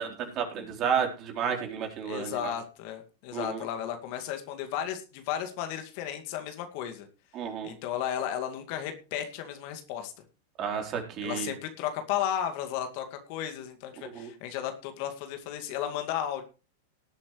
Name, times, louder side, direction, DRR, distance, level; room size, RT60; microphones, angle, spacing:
voice 1, 0.0-2.5 3.3-3.6 7.3-7.7 10.6-11.5 14.1-14.3, right 7 dB, 40° right, 3 dB, 3.8 m, -31 dB
voice 2, 2.0-7.1 7.6-10.1 11.2-16.4, left 10 dB, 55° left, 6 dB, 2.2 m, -34 dB
18.5 x 8.5 x 3.2 m, 0.33 s
hypercardioid pair, 100°, 0 cm